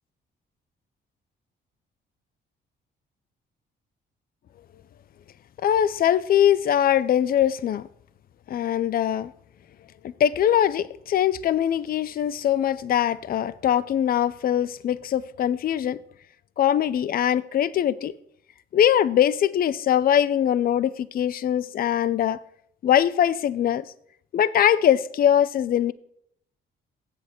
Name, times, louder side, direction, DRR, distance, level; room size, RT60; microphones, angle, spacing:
voice 1, 5.6-7.9 8.5-9.3 10.0-16.0 16.6-18.1 18.7-22.4 22.8-23.9 24.3-25.9, left 10 dB, 50° left, 0.4 m, -22 dB
8.0 x 7.5 x 4.3 m
cardioid pair, 90°, 20 cm